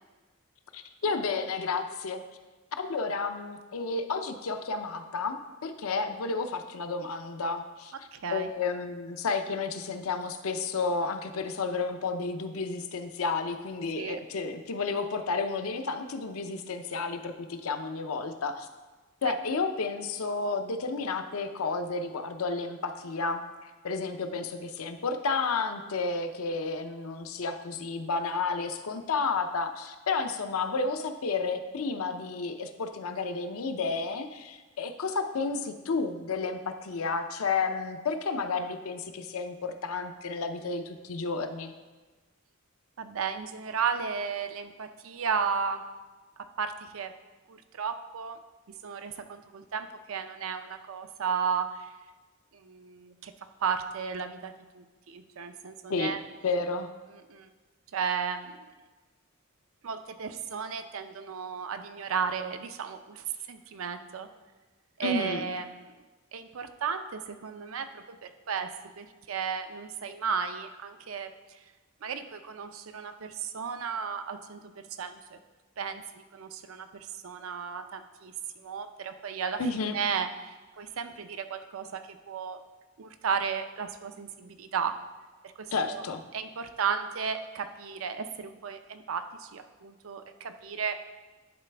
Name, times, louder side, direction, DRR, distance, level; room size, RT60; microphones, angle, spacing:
voice 1, 0.7-2.2 2.8-7.9 8.3-18.7 19.2-41.7 55.9-56.2 56.4-56.9 65.0-65.4 79.6-80.0 85.7-86.2, left 4 dB, 90° left, 8 dB, 0.6 m, -31 dB
voice 2, 8.1-8.5 14.0-14.2 19.2-19.3 43.0-45.8 46.4-47.1 47.5-48.4 48.8-51.9 52.5-53.3 53.6-56.2 57.1-57.5 57.9-58.6 59.8-64.3 65.0-65.9 66.3-68.7 69.0-71.3 72.0-75.4 75.8-79.6 79.9-82.6 83.0-84.9 85.6-86.0 86.3-91.0, right 6 dB, 70° right, 8 dB, 0.5 m, -34 dB
10.5 x 4.1 x 3.4 m, 1.2 s
head